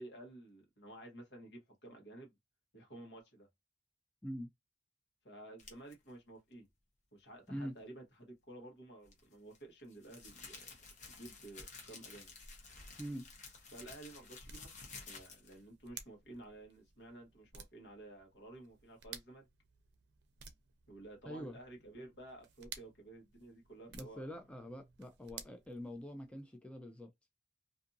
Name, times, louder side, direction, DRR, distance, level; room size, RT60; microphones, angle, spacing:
voice 1, 0.0-2.3 2.7-3.5 5.2-6.7 7.1-10.7 11.1-12.3 13.7-19.5 20.9-24.3, right 1 dB, 70° left, 1.2 m, -53 dB
sound 1, 5.6-5.9 9.0-15.6, left 4 dB, 45° left, 0.8 m, -52 dB
sound 2, 13.3-26.4, right 7 dB, 70° right, 0.5 m, -56 dB
voice 2, 21.3-21.6 23.9-27.1, equal, 5° left, 0.4 m, -44 dB
2.6 x 2.5 x 2.6 m
head